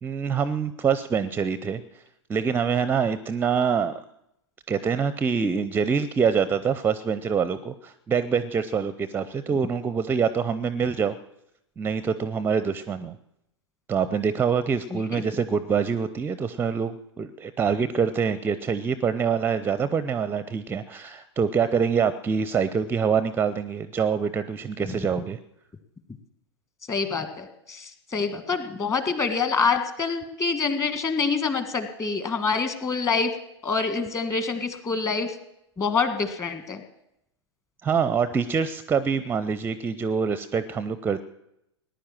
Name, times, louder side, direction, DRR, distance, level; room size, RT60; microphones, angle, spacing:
voice 1, 0.0-1.8 2.3-4.0 4.7-11.2 11.8-13.2 13.9-25.4 37.8-41.2, right 6 dB, 15° right, 14 dB, 0.6 m, -25 dB
voice 2, 14.9-15.2 26.9-33.3 33.6-35.3 35.8-36.8, left 5 dB, 20° left, 8 dB, 1.7 m, -26 dB
19.0 x 10.5 x 7.4 m, 0.83 s
figure-of-eight pair, 100°, 15 cm